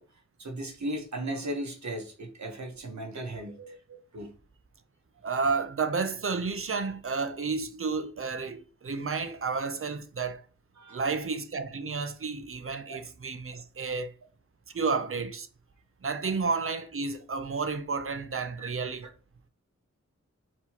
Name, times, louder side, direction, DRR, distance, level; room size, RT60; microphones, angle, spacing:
voice 1, 0.0-4.3 10.8-11.0 12.9-13.0 18.6-18.7, right 1 dB, 75° right, 1.2 m, -37 dB
voice 2, 5.2-10.4 10.9-14.1 14.7-15.5 16.0-19.0, right 4 dB, 50° right, 0.6 m, -31 dB
4.6 x 3.7 x 2.9 m
wide cardioid pair, 80°, 29 cm